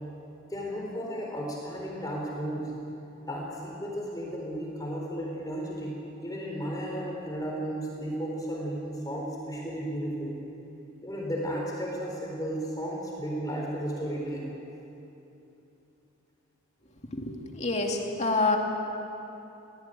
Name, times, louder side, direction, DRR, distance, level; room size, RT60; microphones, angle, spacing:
voice 1, 0.5-2.7 3.3-10.3 11.0-14.5, equal, 20° left, -2 dB, 3.9 m, -34 dB
voice 2, 17.1-18.6, left 3 dB, 35° left, 1 dB, 2.4 m, -27 dB
23.0 x 16.5 x 9.2 m, 2.9 s
head